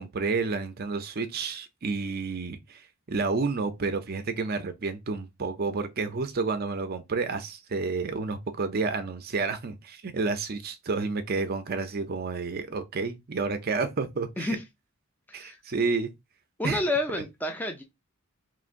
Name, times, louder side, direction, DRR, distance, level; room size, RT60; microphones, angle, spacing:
voice 1, 0.0-14.6 15.3-16.1 16.6-16.8, right 4 dB, 45° right, 0.5 m, -30 dB
voice 2, 16.6-17.8, left 2 dB, 10° left, 0.6 m, -29 dB
4.7 x 3.1 x 2.5 m
head